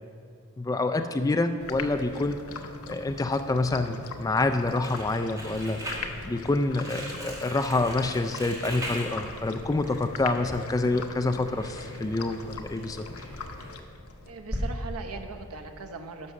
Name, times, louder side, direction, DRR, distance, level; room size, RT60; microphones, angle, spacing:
voice 1, 0.6-2.4 2.9-6.0 6.2-13.1, left 2 dB, 15° left, 7 dB, 0.3 m, -27 dB
sound 1, 1.6-14.3, left 4 dB, 70° left, 0.7 m, -41 dB
Crumpling crinkling, 4.7-14.6, equal, 15° right, 1.9 m, -40 dB
voice 2, 14.2-16.3, right 3 dB, 80° right, 4 dB, 0.9 m, -39 dB
11.0 x 6.2 x 6.7 m, 2.4 s
head